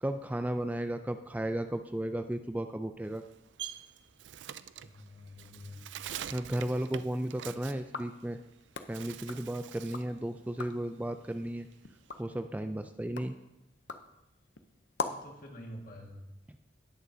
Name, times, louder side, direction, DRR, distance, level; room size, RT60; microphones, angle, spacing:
voice 1, 0.0-3.2 6.3-8.4 8.9-11.7 12.2-13.3, right 1 dB, 10° right, 8 dB, 0.3 m, -34 dB
Bird, 3.0-8.5 8.8-10.1 10.5-12.2, right 10 dB, 80° right, 0.4 m, -45 dB
voice 2, 4.8-5.8 15.0-16.2, left 1 dB, 50° left, 1 dB, 1.8 m, -47 dB
sound 1, 7.8-10.1 10.4-10.9 11.4-15.4, left 4 dB, 80° left, 0.7 m, -43 dB
18.5 x 6.7 x 2.7 m, 0.95 s
head